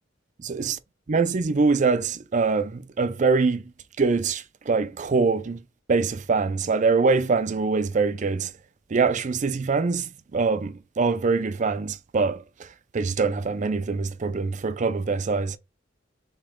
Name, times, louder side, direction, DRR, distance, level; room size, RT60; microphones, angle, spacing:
voice 1, 0.4-0.8 1.1-3.7 4.0-5.6 5.9-8.5 8.9-12.7 12.9-15.6, right 4 dB, 40° right, 0.4 m, -24 dB
3.8 x 3.2 x 3.6 m
head